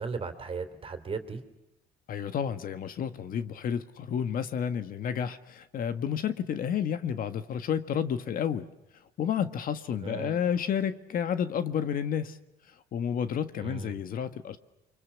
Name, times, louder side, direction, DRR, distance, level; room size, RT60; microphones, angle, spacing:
voice 1, 0.0-1.4 10.0-10.4 13.6-14.0, right 5 dB, 35° right, 3.4 m, -36 dB
voice 2, 2.1-8.7 9.2-12.4 12.9-14.6, left 8 dB, 55° left, 1.6 m, -30 dB
30.0 x 25.0 x 7.1 m
cardioid pair, 110°, 17 cm